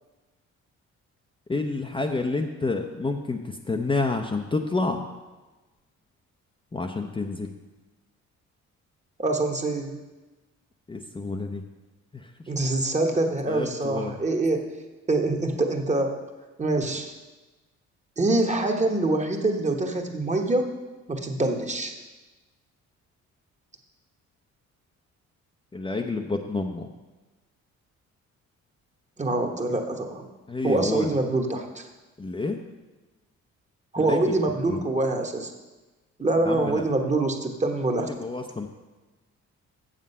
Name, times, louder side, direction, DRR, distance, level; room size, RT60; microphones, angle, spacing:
voice 1, 1.5-5.0 6.7-7.5 10.9-11.6 12.1-12.3 13.5-14.1 25.7-26.9 30.5-31.2 32.2-32.6 34.0-34.3 34.7-34.8 36.4-36.8 38.1-38.7, left 3 dB, 15° left, 3 dB, 0.6 m, -29 dB
voice 2, 9.2-10.0 12.5-14.7 15.1-16.2 16.6-17.1 18.2-20.7 21.1-21.9 29.2-30.3 30.6-31.9 33.9-35.5 36.2-38.1, right 2 dB, 25° right, 4 dB, 1.2 m, -25 dB
7.5 x 7.3 x 5.5 m, 1.2 s
cardioid pair, 90°, 30 cm